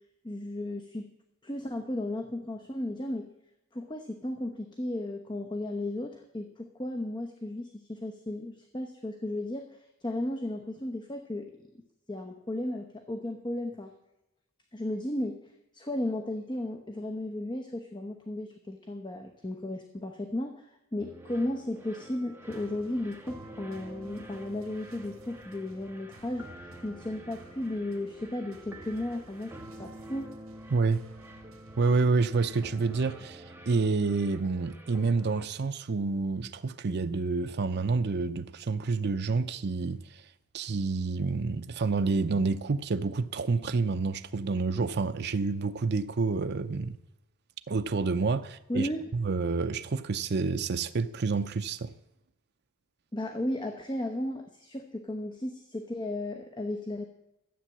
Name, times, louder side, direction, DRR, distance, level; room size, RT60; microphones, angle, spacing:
voice 1, 0.2-1.0 1.4-3.3 3.7-9.7 10.0-11.5 12.1-13.9 14.7-15.4 15.7-29.5 29.8-30.3 48.7-49.0 53.1-57.0, left 1 dB, 20° left, 1.0 m, -34 dB
sound 1, 21.0-35.5, right 1 dB, 10° right, 1.4 m, -48 dB
sound 2, 22.5-32.1, right 2 dB, 75° right, 1.7 m, -57 dB
voice 2, 30.7-31.0 31.8-40.2 40.5-47.0 47.7-51.9, right 4 dB, 55° right, 0.6 m, -28 dB
13.0 x 8.3 x 7.4 m
head